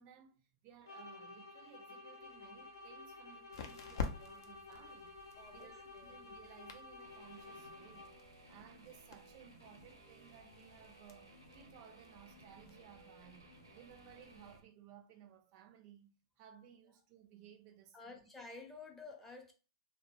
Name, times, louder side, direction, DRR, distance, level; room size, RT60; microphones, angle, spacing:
voice 1, 0.0-8.1 8.5-18.3, right 9 dB, 45° right, 0.4 m, -59 dB
sound 1, 0.8-8.3, left 3 dB, 90° left, 0.8 m, -53 dB
sound 2, 2.2-14.6, left 5 dB, 65° left, 0.4 m, -50 dB
voice 2, 5.4-6.2 17.9-19.5, left 3 dB, 15° left, 0.6 m, -52 dB
Guitar, 7.0-14.6, right 1 dB, 90° right, 0.6 m, -60 dB
2.1 x 2.0 x 3.0 m
hypercardioid pair, 100°, 2 cm